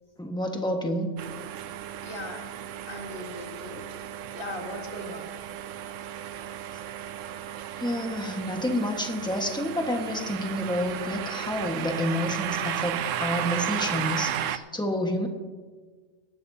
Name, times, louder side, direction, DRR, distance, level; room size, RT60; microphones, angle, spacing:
voice 1, 0.2-1.1 7.8-15.3, left 1 dB, 5° left, 2 dB, 1.3 m, -29 dB
sound 1, 1.2-14.6, right 10 dB, 80° right, 0.9 m, -34 dB
voice 2, 2.0-2.5 2.9-3.8 4.3-5.3, left 1 dB, 45° left, 2 dB, 1.9 m, -38 dB
19.0 x 12.0 x 2.8 m, 1.4 s
omnidirectional pair, 1.3 m